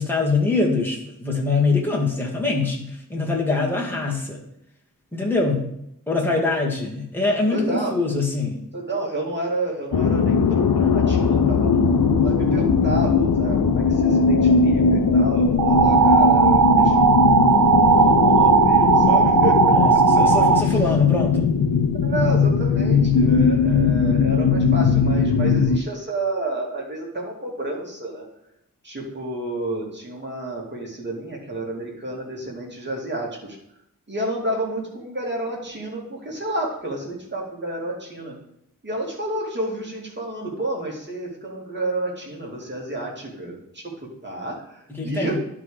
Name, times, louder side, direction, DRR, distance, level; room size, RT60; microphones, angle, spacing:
voice 1, 0.0-4.4 5.1-5.7 6.1-8.6 19.7-19.9 20.2-21.5 45.0-45.4, left 3 dB, 5° left, -3 dB, 2.0 m, -23 dB
voice 2, 7.5-8.2 8.7-19.6 20.6-20.8 22.0-28.3 28.8-33.3 34.1-38.4 38.8-45.4, right 2 dB, 30° right, -2 dB, 2.4 m, -30 dB
sound 1, 9.9-25.8, left 5 dB, 80° left, 0.7 m, -19 dB
sound 2, 15.6-20.6, right 6 dB, 70° right, 0.8 m, -16 dB
11.0 x 3.8 x 4.9 m, 0.76 s
wide cardioid pair, 90°, 34 cm